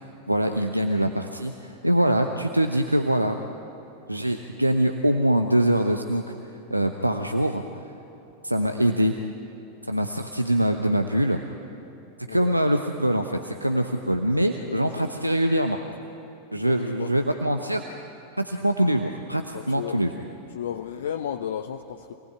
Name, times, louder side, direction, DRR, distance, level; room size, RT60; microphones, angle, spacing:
voice 1, 0.3-3.4 4.1-6.4 6.7-7.6 8.4-9.1 9.8-11.4 12.3-15.8 16.5-17.8 18.4-20.1, right 1 dB, 90° right, 5 dB, 0.9 m, -23 dB
voice 2, 14.6-15.0 16.6-17.1 19.5-20.0 20.5-22.1, left 9 dB, 60° left, 5 dB, 0.8 m, -33 dB
26.5 x 19.0 x 9.4 m, 3.0 s
figure-of-eight pair, 90°, 0 cm